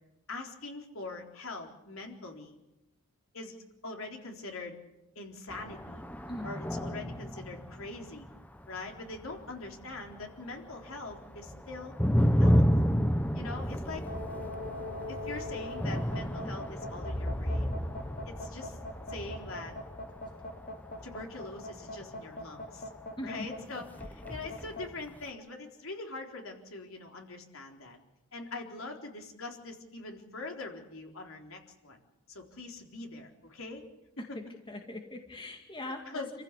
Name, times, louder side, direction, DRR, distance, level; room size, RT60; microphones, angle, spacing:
voice 1, 0.3-2.6 3.3-3.6 3.8-4.8 5.1-6.0 6.4-8.3 8.7-11.9 12.3-12.7 13.3-14.0 15.1-17.8 18.3-18.8 19.1-19.7 21.0-22.9 23.2-28.0 28.3-32.0 32.3-33.8 36.1-36.3, left 3 dB, 75° left, 2 dB, 3.9 m, -43 dB
sound 1, 5.5-10.4 10.7-23.4 23.8-25.2, equal, 5° left, 1.0 m, -32 dB
sound 2, 14.0-24.9, left 1 dB, 40° left, 1.6 m, -42 dB
voice 2, 34.3-36.2, left 1 dB, 25° left, 3 dB, 2.2 m, -41 dB
28.0 x 15.5 x 8.3 m, 0.95 s
head